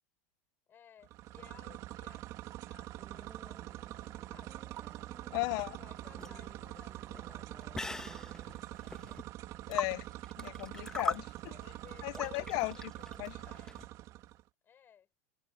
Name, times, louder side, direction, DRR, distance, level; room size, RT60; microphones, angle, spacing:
voice 1, 0.7-2.2 2.7-4.8 5.2-9.3 11.4-13.8 14.6-15.1, left 8 dB, 25° left, 6.3 m, -60 dB
sound 1, 1.0-14.4, right 15 dB, 40° right, 2.4 m, -45 dB
sound 2, 3.0-8.6, right 3 dB, 10° right, 2.1 m, -59 dB
voice 2, 5.3-5.8 9.7-10.0 10.4-11.3 12.0-12.8 13.2-13.3, left 26 dB, 45° left, 0.5 m, -35 dB
sound 3, 5.9-13.9, left 2 dB, 5° left, 1.2 m, -42 dB
supercardioid pair, 155°, 9 cm